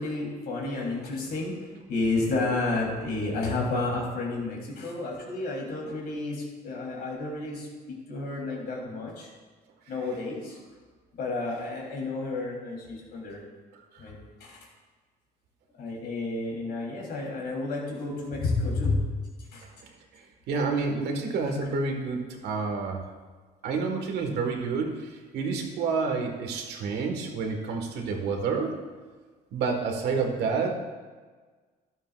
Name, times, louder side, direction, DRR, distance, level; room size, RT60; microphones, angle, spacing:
voice 1, 0.0-9.3 9.9-10.6 11.1-13.4 14.0-14.6 15.8-19.1 19.5-19.6, left 3 dB, 65° left, -2 dB, 3.4 m, -31 dB
voice 2, 20.5-23.0 23.6-28.8 29.5-30.7, right 4 dB, 80° right, 3 dB, 1.6 m, -29 dB
11.5 x 11.5 x 2.5 m, 1.4 s
cardioid pair, 110°, 17 cm